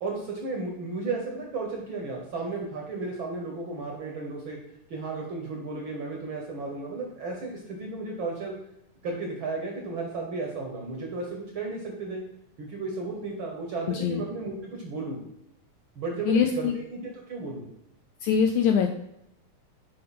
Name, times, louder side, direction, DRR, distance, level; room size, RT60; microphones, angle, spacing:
voice 1, 0.0-4.6 4.9-8.5 9.0-12.2 12.6-15.2 15.9-17.0 17.3-17.7, right 3 dB, 60° right, 0 dB, 1.3 m, -34 dB
voice 2, 13.9-14.2 16.3-16.7 18.2-18.9, left 7 dB, 80° left, 5 dB, 1.8 m, -23 dB
7.5 x 5.2 x 4.2 m, 0.81 s
omnidirectional pair, 3.9 m